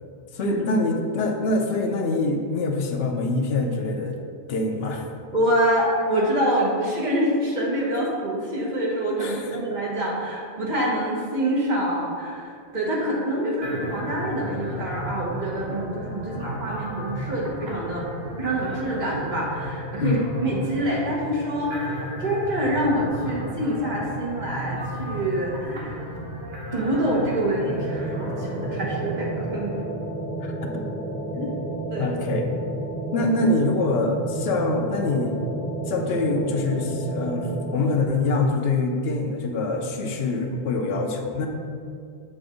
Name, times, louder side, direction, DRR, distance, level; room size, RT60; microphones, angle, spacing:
voice 1, 0.3-4.2 4.5-5.1 9.2-9.5 20.0-20.3 30.4-30.9 31.4-31.5 32.0-32.5 33.1-35.4 35.9-41.5, left 2 dB, 65° left, 2 dB, 0.9 m, -25 dB
voice 2, 5.3-18.1 18.4-26.0 26.7-29.8 31.9-32.1, right 1 dB, 45° right, -4 dB, 1.2 m, -26 dB
sound 1, 13.6-29.8, right 1 dB, 65° right, 1.2 m, -34 dB
sound 2, 27.6-38.1, right 2 dB, 15° left, 0.5 m, -31 dB
7.5 x 2.6 x 4.9 m, 2.2 s
omnidirectional pair, 1.1 m